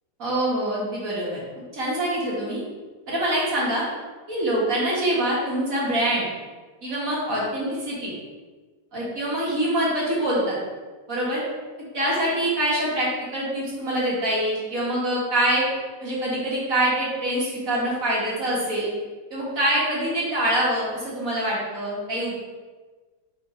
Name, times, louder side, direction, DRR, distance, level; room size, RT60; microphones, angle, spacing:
voice 1, 0.2-1.4 1.7-2.6 3.1-3.9 4.3-6.2 6.8-8.1 8.9-10.6 11.1-11.4 11.9-15.7 16.0-18.9 19.3-22.3, right 1 dB, 55° right, -6 dB, 1.9 m, -25 dB
5.2 x 3.9 x 4.8 m, 1.3 s
omnidirectional pair, 1.7 m